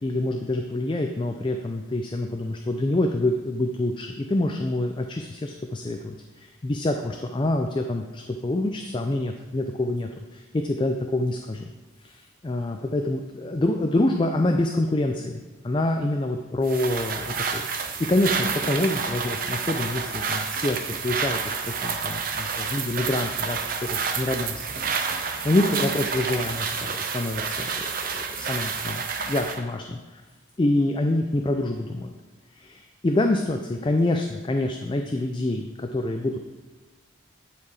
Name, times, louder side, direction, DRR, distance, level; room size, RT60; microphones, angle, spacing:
voice 1, 0.0-11.7 12.0-30.2 30.6-32.1 32.5-36.4, left 1 dB, 25° left, 4 dB, 0.4 m, -26 dB
sound 1, 16.6-29.6, right 5 dB, 45° right, 0.7 m, -29 dB
10.0 x 4.8 x 4.8 m, 1.3 s
head